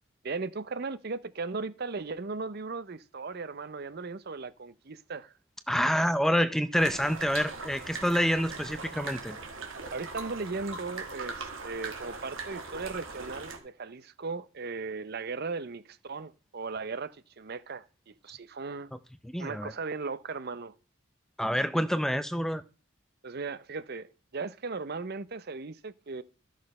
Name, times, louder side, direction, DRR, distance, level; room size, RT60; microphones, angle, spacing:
voice 1, 0.2-5.3 9.9-18.9 19.4-20.8 23.2-26.2, right 4 dB, 50° right, 0.7 m, -37 dB
voice 2, 5.7-9.4 19.2-19.7 21.4-22.6, equal, ahead, 0.5 m, -27 dB
sound 1, 6.7-13.6, right 4 dB, 75° right, 2.2 m, -40 dB
13.5 x 6.4 x 5.3 m
head